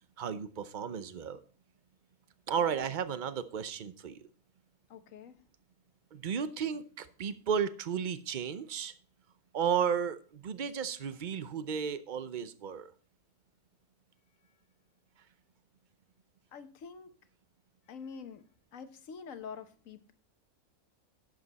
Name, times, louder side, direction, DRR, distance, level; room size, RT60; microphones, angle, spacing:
voice 1, 0.2-1.4 2.5-4.2 6.1-8.9 9.5-12.9, right 7 dB, 45° right, 0.6 m, -33 dB
voice 2, 4.9-5.4 16.5-17.1 17.9-18.5 18.7-20.1, left 6 dB, 65° left, 1.3 m, -46 dB
11.0 x 7.6 x 4.1 m
omnidirectional pair, 1.6 m